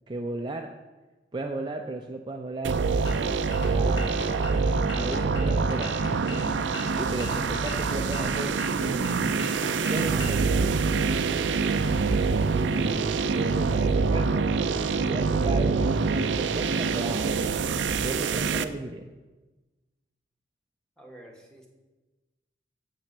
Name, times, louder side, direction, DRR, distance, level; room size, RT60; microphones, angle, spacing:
voice 1, 0.1-0.7 1.3-2.8 3.7-4.6 4.9-6.0 6.9-8.5 9.8-10.6 12.5-14.5 15.0-17.5 18.0-19.1, right 2 dB, 25° right, 3 dB, 0.5 m, -34 dB
sound 1, 2.6-18.6, right 4 dB, 85° right, 0.5 m, -25 dB
sound 2, 3.1-10.4, left 1 dB, 80° left, 1.6 m, -38 dB
voice 2, 21.0-21.7, right 1 dB, 5° left, -1 dB, 1.4 m, -49 dB
7.6 x 6.0 x 6.6 m, 1.2 s
head